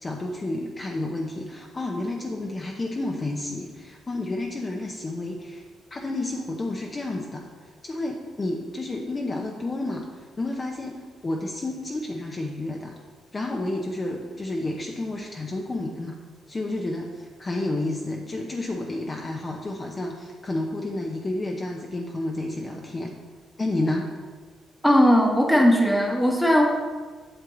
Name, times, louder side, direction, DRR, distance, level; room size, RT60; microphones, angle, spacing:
voice 1, 0.0-5.6 5.9-7.5 7.8-13.0 13.3-16.2 16.5-23.1 23.6-24.1, left 2 dB, 30° left, 0 dB, 0.8 m, -30 dB
voice 2, 24.8-26.7, equal, 5° left, 1 dB, 1.3 m, -18 dB
8.0 x 6.3 x 3.9 m, 1.4 s
cardioid pair, 90°, 0 cm